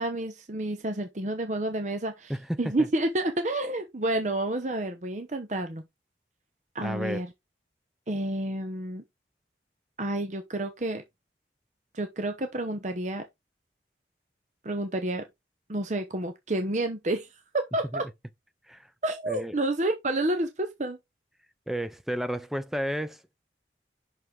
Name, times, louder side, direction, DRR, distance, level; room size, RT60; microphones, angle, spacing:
voice 1, 0.0-2.3 2.6-5.8 6.7-7.3 8.1-9.0 10.0-11.0 11.9-13.2 14.6-15.2 15.7-17.3 17.5-18.1 19.0-21.0, right 1 dB, 40° right, 0.8 m, -29 dB
voice 2, 6.8-7.2 17.9-18.0 18.7-18.9 19.3-19.5 21.7-23.2, equal, ahead, 0.6 m, -32 dB
6.1 x 5.6 x 3.7 m
head